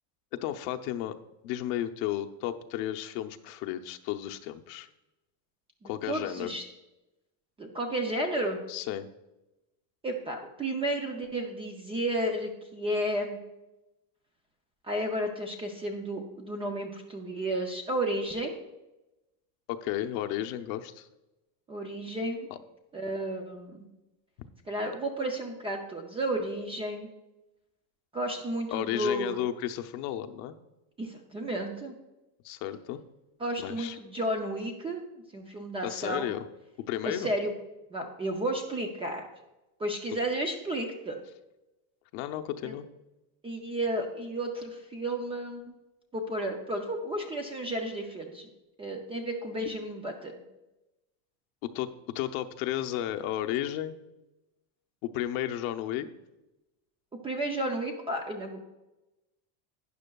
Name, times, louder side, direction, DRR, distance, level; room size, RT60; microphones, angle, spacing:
voice 1, 0.3-1.1 1.4-4.9 5.8-6.5 8.7-9.1 19.7-21.1 22.5-22.6 28.7-30.5 32.4-33.0 33.6-34.0 35.8-36.5 36.8-37.3 42.1-42.9 51.6-54.0 55.0-56.1, left 12 dB, 65° left, 7 dB, 0.8 m, -33 dB
voice 2, 5.8-6.6 7.6-8.6 10.0-13.4 14.9-18.5 21.7-22.5 22.9-23.9 24.7-27.1 28.1-29.4 31.0-31.9 33.4-35.0 35.3-36.3 37.1-37.5 37.9-39.2 39.8-41.2 42.6-42.7 43.4-45.7 46.1-48.5 48.8-50.3 57.2-58.6, right 1 dB, 15° right, 3 dB, 0.4 m, -32 dB
12.0 x 9.5 x 2.3 m, 0.99 s
cardioid pair, 160°, 47 cm